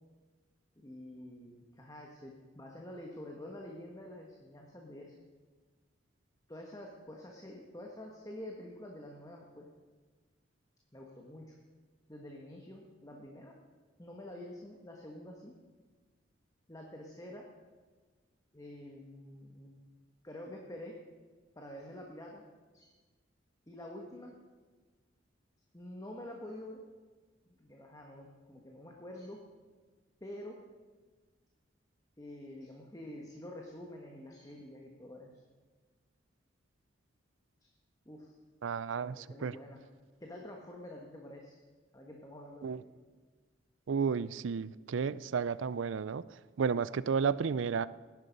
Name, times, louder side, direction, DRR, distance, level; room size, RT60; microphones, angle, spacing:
voice 1, 0.8-5.1 6.5-9.7 10.9-11.5 12.1-13.5 14.0-15.5 16.7-17.4 18.5-19.8 20.2-20.9 21.5-22.4 22.7-22.9 23.7-24.3 25.7-26.8 27.5-29.4 30.2-30.6 32.2-35.3 37.6-37.7 38.0-38.3 39.0-39.8 40.2-41.6 41.9-42.9, left 1 dB, 20° left, 0 dB, 1.5 m, -47 dB
voice 2, 38.6-39.6 42.6-42.8 43.9-46.2 46.6-47.9, right 6 dB, 85° right, 18 dB, 0.5 m, -32 dB
17.5 x 11.0 x 5.3 m, 1.4 s
head